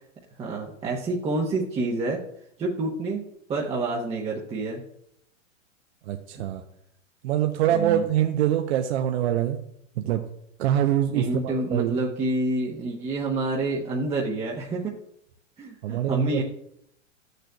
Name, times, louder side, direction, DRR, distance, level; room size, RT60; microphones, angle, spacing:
voice 1, 0.4-2.2 2.6-4.8 7.7-8.0 11.1-14.9 15.6-16.4, right 2 dB, 15° right, -3 dB, 0.9 m, -28 dB
voice 2, 6.1-6.6 7.2-9.6 10.0-10.2 10.6-12.0 15.8-16.4, right 11 dB, 55° right, 5 dB, 0.7 m, -24 dB
12.0 x 6.6 x 2.3 m, 0.73 s
hypercardioid pair, 125°, 38 cm